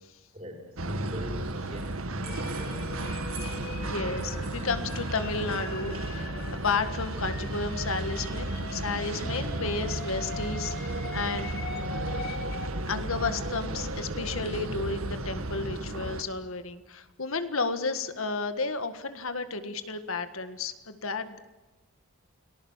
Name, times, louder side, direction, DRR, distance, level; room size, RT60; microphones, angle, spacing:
voice 1, 0.3-2.8, equal, 30° right, 2 dB, 5.4 m, -39 dB
sound 1, 0.8-16.2, right 1 dB, 80° right, 1.9 m, -34 dB
sound 2, 2.2-12.7, left 3 dB, 45° left, 3.1 m, -42 dB
voice 2, 3.8-6.3 6.6-11.5 12.9-21.4, left 4 dB, 75° left, 10 dB, 1.7 m, -32 dB
29.5 x 19.5 x 7.3 m, 1.1 s
head